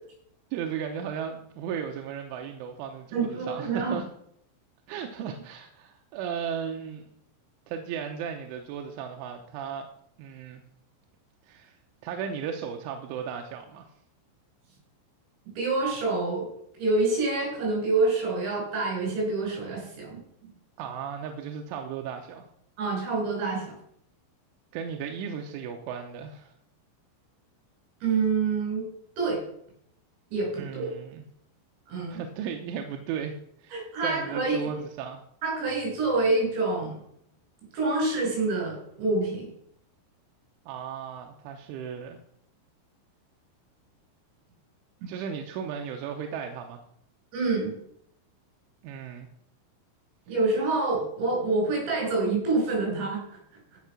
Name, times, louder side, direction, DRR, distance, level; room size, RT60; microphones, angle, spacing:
voice 1, 0.5-4.1 4.9-7.1 7.7-9.9 10.2-10.6 11.4-11.8 12.0-13.9 20.8-22.5 24.7-26.5 30.6-31.2 32.1-35.2 40.7-42.2 45.1-46.8 48.8-49.3, right 7 dB, 80° right, 3 dB, 3.2 m, -35 dB
voice 2, 3.1-4.0 15.6-16.5 16.8-20.2 22.8-23.7 28.0-28.9 29.2-29.4 30.3-31.0 31.9-32.2 33.7-34.6 35.4-37.0 37.7-39.5 47.3-47.7 50.3-53.4, right 3 dB, 60° right, -2 dB, 7.5 m, -27 dB
15.0 x 6.0 x 6.0 m, 0.70 s
omnidirectional pair, 5.9 m